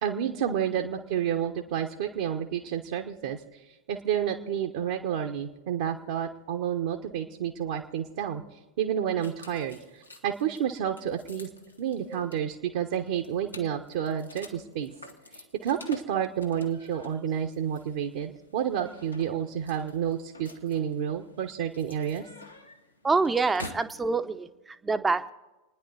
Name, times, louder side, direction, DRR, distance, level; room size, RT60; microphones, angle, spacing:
voice 1, 0.0-3.4 3.9-8.4 8.8-11.5 11.8-14.9 15.3-22.2, right 9 dB, 55° right, 2 dB, 1.1 m, -30 dB
sound 1, 9.2-24.0, left 2 dB, 85° left, 1.6 m, -49 dB
voice 2, 23.0-25.3, right 4 dB, 10° right, 10 dB, 0.8 m, -26 dB
29.5 x 10.0 x 4.1 m, 1.1 s
figure-of-eight pair, 90°, 0 cm